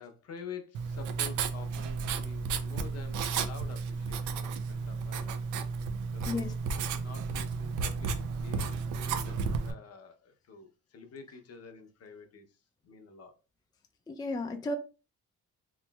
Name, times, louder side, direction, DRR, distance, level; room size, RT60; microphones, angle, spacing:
voice 1, 0.0-5.4 6.1-12.6 12.8-13.3, left 5 dB, 55° left, 0.7 m, -48 dB
Writing, 0.7-9.7, right 5 dB, 75° right, 0.5 m, -33 dB
voice 2, 14.1-14.8, left 2 dB, 15° left, 0.4 m, -33 dB
3.1 x 2.9 x 2.2 m
cardioid pair, 90°, 30 cm